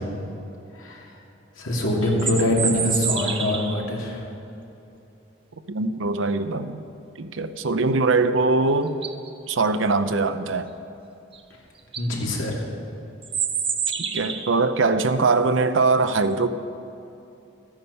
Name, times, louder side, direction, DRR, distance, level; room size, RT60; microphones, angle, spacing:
voice 1, 0.7-1.2 1.6-4.3 12.0-12.6, left 1 dB, 90° left, 2.6 m, -24 dB
sound 1, 2.0-3.8 8.4-8.5 8.9-9.3 11.3-11.4 11.8-12.1 13.2-14.6, right 6 dB, 25° right, 0.7 m, -28 dB
voice 2, 5.7-6.8 7.2-9.0 9.5-10.7 14.0-16.5, right 3 dB, 75° right, 0.6 m, -22 dB
13.5 x 9.7 x 5.6 m
head